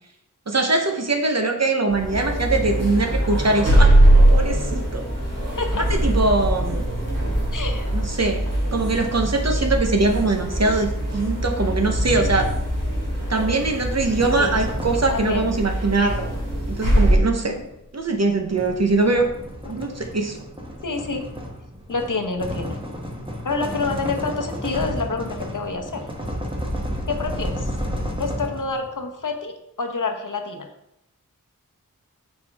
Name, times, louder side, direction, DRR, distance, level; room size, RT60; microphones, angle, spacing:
voice 1, 0.5-5.1 5.7-6.9 7.9-8.4 8.7-12.5 13.3-16.2 16.7-17.6 17.9-19.3 19.7-20.4, right 3 dB, 50° right, 4 dB, 1.0 m, -22 dB
sound 1, 1.9-17.2, right 1 dB, 75° right, 2.6 m, -21 dB
voice 2, 7.5-7.9 14.2-14.5 15.1-15.5 17.3-17.6 19.8-19.9 20.8-21.3 21.9-22.8 23.4-26.0 27.1-27.7 28.2-30.7, left 4 dB, 70° left, 5 dB, 0.9 m, -28 dB
sound 2, 14.2-15.5 16.7-28.9, equal, 15° right, 1.1 m, -32 dB
7.3 x 4.5 x 3.5 m, 0.82 s
wide cardioid pair, 65°, 33 cm